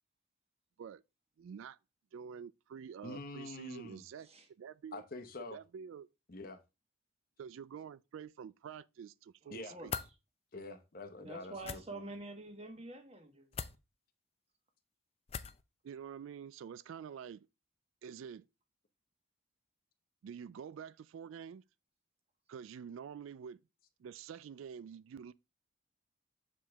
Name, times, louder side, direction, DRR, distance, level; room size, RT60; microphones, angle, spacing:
voice 1, 1.4-1.8 2.1-4.3 4.6-5.0 5.5-6.1 7.4-9.9 15.8-17.5 18.0-18.5 20.2-21.6 22.5-23.6 24.0-25.3, right 7 dB, 80° right, 0.3 m, -47 dB
voice 2, 3.0-4.0 4.9-5.6 6.3-6.6 9.5-9.8 10.5-12.1, left 2 dB, 45° left, 0.8 m, -46 dB
voice 3, 9.5-9.9 11.2-13.6, right 2 dB, 30° right, 1.3 m, -47 dB
sound 1, 9.9-10.1 11.6-11.8 13.5-13.8 15.3-15.6, left 6 dB, 30° left, 0.4 m, -40 dB
7.3 x 5.0 x 3.4 m
head